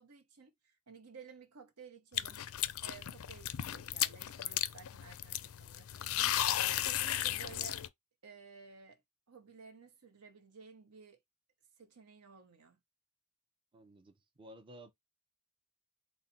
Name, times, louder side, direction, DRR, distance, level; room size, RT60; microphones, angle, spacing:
voice 1, 0.0-2.4 2.8-6.4 6.8-7.8 8.2-9.0 9.3-11.2 11.8-12.8, right 5 dB, 85° right, 1.0 m, -55 dB
sound 1, 2.1-7.9, left 12 dB, 65° left, 0.4 m, -35 dB
voice 2, 13.7-14.9, right 1 dB, 20° right, 0.5 m, -54 dB
4.0 x 2.1 x 4.0 m
head